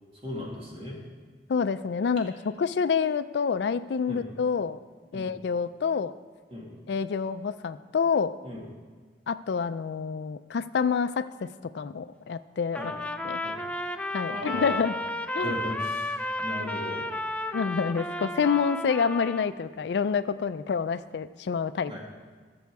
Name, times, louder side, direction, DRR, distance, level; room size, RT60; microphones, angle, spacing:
voice 1, 0.2-1.0 4.1-4.2 5.1-5.3 6.5-6.7 8.4-8.6 12.8-12.9 13.4-13.6 14.3-14.9 15.4-17.1 21.9-22.0, equal, 35° right, -3 dB, 2.4 m, -37 dB
voice 2, 1.5-4.8 5.1-6.1 6.9-8.4 9.3-12.8 13.2-13.4 14.1-14.9 15.3-15.5 17.5-21.9, left 6 dB, 70° left, 14 dB, 0.4 m, -27 dB
Trumpet, 12.7-19.5, left 1 dB, 5° left, 0.4 m, -33 dB
15.0 x 7.1 x 4.7 m, 1.5 s
head